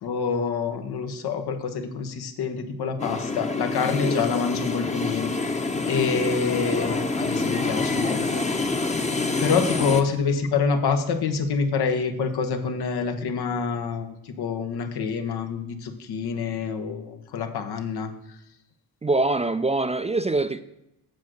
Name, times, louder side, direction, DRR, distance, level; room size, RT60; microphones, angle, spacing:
voice 1, 0.0-5.3 5.8-8.4 9.4-18.1, left 5 dB, 75° left, 1.3 m, -26 dB
sound 1, 3.0-10.0, left 3 dB, 20° left, 0.9 m, -27 dB
voice 2, 19.0-20.6, right 2 dB, 15° right, 0.4 m, -24 dB
8.5 x 6.3 x 6.4 m
cardioid pair, 90°, 39 cm